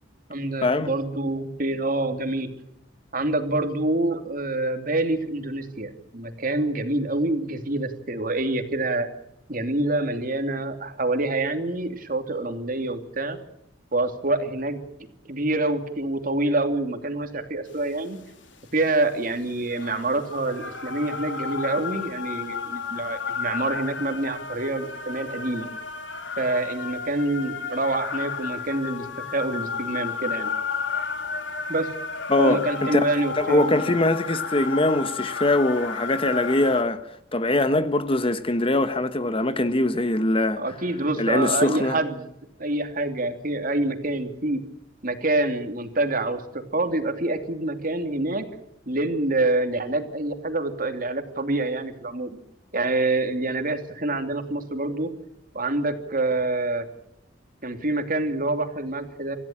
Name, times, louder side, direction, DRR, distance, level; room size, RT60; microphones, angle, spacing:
voice 1, 0.3-2.5 3.1-9.1 9.5-13.4 13.9-14.8 15.3-18.2 18.7-25.7 26.4-30.5 31.7-31.9 32.4-33.8 40.6-42.3 42.6-44.6 45.0-46.4 46.7-48.5 48.9-52.4 52.7-55.1 55.5-56.9 57.6-59.4, right 2 dB, 50° right, 2.8 m, -26 dB
sound 1, 17.8-36.8, left 5 dB, 90° left, 3.5 m, -33 dB
voice 2, 32.3-40.6 41.2-42.0, left 2 dB, 30° left, 1.1 m, -22 dB
26.5 x 15.0 x 8.8 m
head